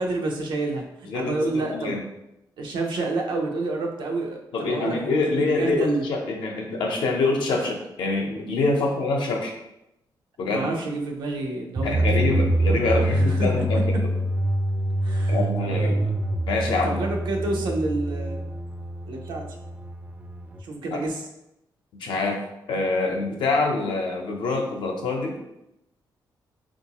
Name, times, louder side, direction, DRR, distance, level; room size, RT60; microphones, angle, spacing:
voice 1, 0.0-2.1 2.6-6.0 10.5-12.5 13.0-14.0 15.0-16.1 16.8-18.6 19.1-19.5 20.6-21.2, right 2 dB, 90° right, 2 dB, 0.6 m, -29 dB
voice 2, 1.0-2.0 4.5-9.5 10.4-10.7 11.8-14.1 15.3-15.9 16.4-17.0 20.9-21.0 22.0-22.4 22.7-25.4, left 3 dB, 85° left, 1 dB, 0.7 m, -25 dB
sound 1, 11.8-20.6, right 1 dB, 20° right, 0.3 m, -25 dB
3.6 x 2.5 x 2.9 m, 0.86 s
cardioid pair, 110°, 8 cm